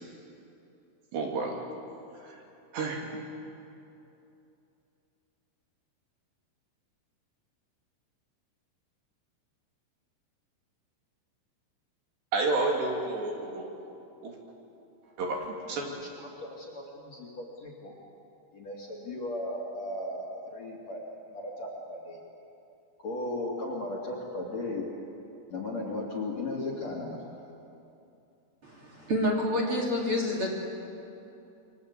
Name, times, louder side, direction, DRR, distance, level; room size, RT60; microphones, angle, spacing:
voice 1, 1.1-1.6 2.2-2.4 2.7-3.1 12.3-13.7 14.2-14.3 15.2-15.9, right 3 dB, 60° right, 1 dB, 4.6 m, -30 dB
voice 2, 15.8-17.9 18.5-21.0 21.3-22.2 23.0-24.9 25.5-27.2, left 2 dB, 40° left, -1 dB, 3.1 m, -36 dB
voice 3, 28.6-30.5, left 1 dB, 30° right, -2 dB, 3.1 m, -28 dB
28.5 x 23.5 x 8.4 m, 2.8 s
omnidirectional pair, 5.7 m